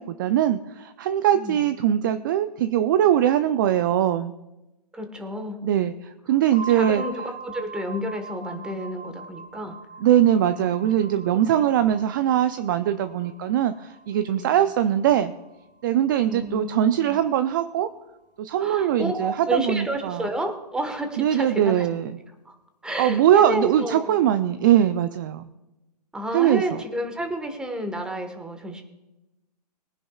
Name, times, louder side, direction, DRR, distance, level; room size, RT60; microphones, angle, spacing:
voice 1, 0.0-4.3 5.6-7.0 10.0-15.3 15.8-17.9 18.4-20.3 21.2-22.1 23.0-25.5 26.3-26.8, right 11 dB, 30° right, 11 dB, 0.5 m, -21 dB
voice 2, 4.9-5.6 6.7-9.7 10.4-10.6 11.0-11.9 14.4-14.5 16.3-17.2 18.6-21.9 22.4-22.5 22.8-24.2 26.1-28.8, right 1 dB, 5° right, 5 dB, 1.4 m, -31 dB
sound 1, 6.5-16.2, right 4 dB, 75° left, 2.1 m, -42 dB
22.5 x 10.0 x 2.4 m, 1.0 s
figure-of-eight pair, 135°, 21 cm